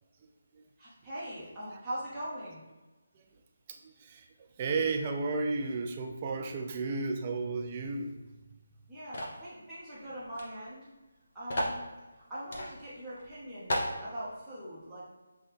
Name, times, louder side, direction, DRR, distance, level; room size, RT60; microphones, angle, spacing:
voice 1, 0.8-2.6 8.9-10.9 11.3-11.9 12.3-15.0, right 1 dB, 5° right, -14 dB, 0.8 m, -41 dB
voice 2, 3.7-4.3 4.6-8.2, right 3 dB, 25° right, 4 dB, 0.3 m, -33 dB
sound 1, 9.1-9.4 10.3-10.5 10.7-10.8 11.5-11.8 12.5-12.7 13.2-13.3 13.7-14.0, equal, 45° left, 0.8 m, -32 dB
5.5 x 2.2 x 3.3 m, 1.2 s
figure-of-eight pair, 150°, 0 cm